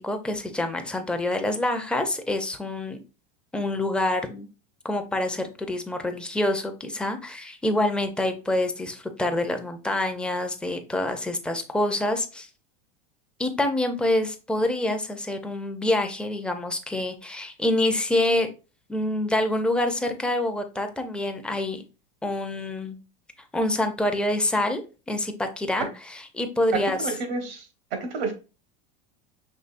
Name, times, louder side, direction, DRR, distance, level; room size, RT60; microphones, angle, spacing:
voice 1, 0.0-3.0 3.5-4.5 4.8-12.5 13.4-18.5 18.9-21.8 22.2-23.0 23.5-24.8 25.1-27.1, left 1 dB, 5° left, 6 dB, 0.5 m, -26 dB
voice 2, 26.8-27.6 28.0-28.3, right 3 dB, 90° right, 6 dB, 1.3 m, -30 dB
5.4 x 3.1 x 2.5 m, 0.32 s
supercardioid pair, 120°, 29 cm